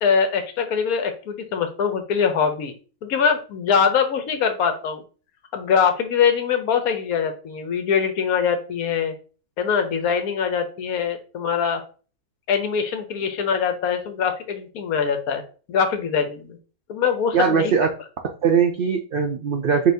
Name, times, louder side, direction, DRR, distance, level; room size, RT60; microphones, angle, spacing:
voice 1, 0.0-2.7 3.0-5.0 5.5-9.1 9.6-11.8 12.5-15.4 15.7-16.6 16.9-17.7, left 6 dB, 75° left, 7 dB, 1.2 m, -23 dB
voice 2, 17.3-17.9 18.2-19.9, right 6 dB, 90° right, 3 dB, 0.4 m, -20 dB
6.2 x 2.9 x 2.7 m, 0.38 s
omnidirectional pair, 1.6 m